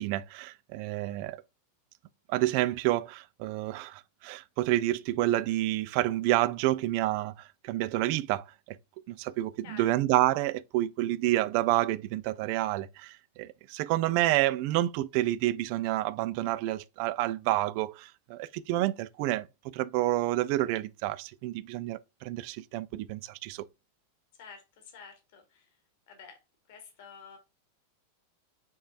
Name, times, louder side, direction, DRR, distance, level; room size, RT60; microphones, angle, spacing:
voice 1, 0.0-1.4 2.3-7.3 7.6-8.8 9.1-23.7, right 15 dB, 45° right, 0.3 m, -29 dB
voice 2, 9.6-9.9 24.4-25.7 26.1-26.4 26.7-27.4, left 6 dB, 50° left, 1.3 m, -49 dB
5.4 x 3.1 x 2.4 m
figure-of-eight pair, 90°, 0 cm